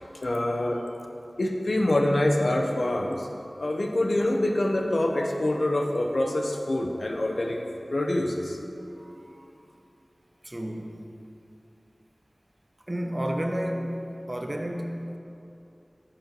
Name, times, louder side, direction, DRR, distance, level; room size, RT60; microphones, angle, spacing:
voice 1, 0.2-0.8 1.4-3.3 3.6-7.6 7.9-8.6, left 1 dB, 75° left, 2 dB, 0.6 m, -25 dB
voice 2, 8.9-9.8 10.4-11.1 12.9-15.2, equal, 35° right, 3 dB, 0.6 m, -32 dB
5.8 x 4.3 x 5.3 m, 2.7 s
wide cardioid pair, 45°, 0 cm